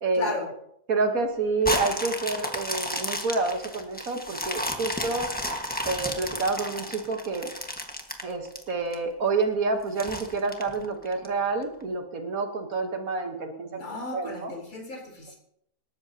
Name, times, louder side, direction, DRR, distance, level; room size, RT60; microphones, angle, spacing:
voice 1, 0.1-0.5 13.7-15.3, left 2 dB, 65° left, -1 dB, 4.3 m, -34 dB
voice 2, 0.9-5.3 5.8-7.5 8.2-13.8 14.1-14.5, right 3 dB, 65° right, 4 dB, 1.7 m, -28 dB
sound 1, 1.6-8.9 9.4-9.5 10.0-11.3 11.8-11.9, left 1 dB, 5° left, 1.3 m, -32 dB
26.0 x 13.0 x 2.8 m, 0.73 s
omnidirectional pair, 1.6 m